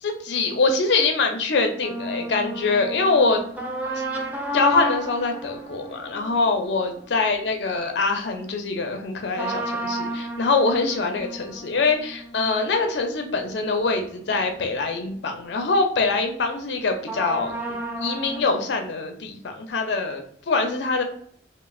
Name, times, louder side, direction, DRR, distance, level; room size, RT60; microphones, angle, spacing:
voice 1, 0.0-3.4 4.5-21.0, left 3 dB, 75° left, 5 dB, 0.5 m, -24 dB
sound 1, 1.8-7.7 9.3-14.7 15.0-15.1 17.1-18.4, equal, 10° right, 0.4 m, -32 dB
3.1 x 2.0 x 2.3 m, 0.63 s
head